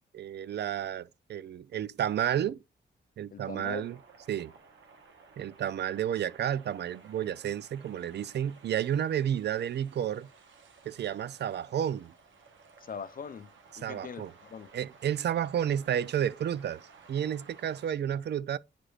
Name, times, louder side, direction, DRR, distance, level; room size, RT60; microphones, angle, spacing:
voice 1, 0.1-2.6 3.2-4.0 4.3-4.5 5.4-10.3 10.9-12.1 13.8-14.3 14.7-16.8 17.1-18.6, right 10 dB, 60° right, 0.4 m, -31 dB
voice 2, 3.3-3.9 12.8-14.7, left 6 dB, 50° left, 0.6 m, -42 dB
sound 1, 3.7-17.9, right 4 dB, 90° right, 1.2 m, -56 dB
8.9 x 4.9 x 2.4 m
cardioid pair, 80°, 19 cm